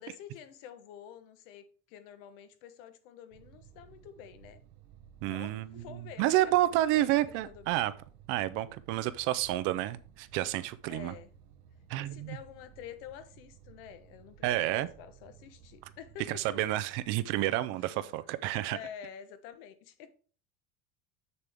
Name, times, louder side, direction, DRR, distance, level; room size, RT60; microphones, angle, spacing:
voice 1, 0.0-4.6 5.3-7.8 10.9-11.3 12.0-16.6 18.7-20.1, left 9 dB, 70° left, 1.1 m, -48 dB
sound 1, 3.3-17.2, right 9 dB, 60° right, 0.8 m, -57 dB
voice 2, 5.2-7.9 8.3-11.1 11.9-12.4 14.4-14.9 16.3-18.8, right 15 dB, 45° right, 0.5 m, -30 dB
7.5 x 6.8 x 3.4 m
cardioid pair, 175°, 29 cm